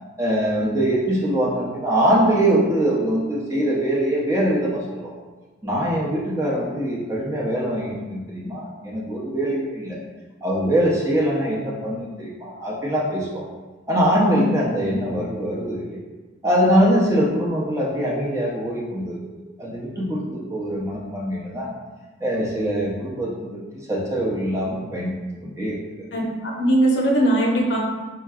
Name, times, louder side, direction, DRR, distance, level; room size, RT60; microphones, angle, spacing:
voice 1, 0.2-5.1 5.6-10.0 10.4-13.4 13.9-15.8 16.4-21.7 22.2-23.6 23.9-25.1 25.4-25.8, equal, 15° right, -5 dB, 0.6 m, -23 dB
voice 2, 26.1-27.8, right 1 dB, 75° left, -2 dB, 0.7 m, -20 dB
4.4 x 2.9 x 2.3 m, 1.2 s
head